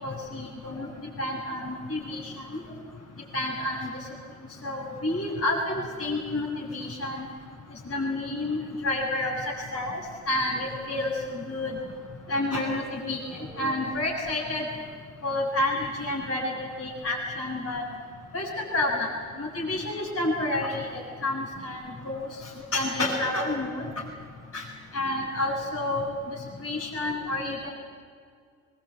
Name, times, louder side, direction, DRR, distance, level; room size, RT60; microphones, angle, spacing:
voice 1, 0.0-2.6 3.3-3.9 4.6-7.3 7.9-9.3 9.7-10.0 10.3-11.8 12.3-14.7 15.2-16.5 16.8-17.8 18.3-18.5 18.7-19.1 19.4-22.3 22.7-23.9 24.5-24.6 24.9-27.7, left 2 dB, 35° left, -5 dB, 7.0 m, -29 dB
23.0 x 21.5 x 8.5 m, 2.1 s
hypercardioid pair, 55°, 40 cm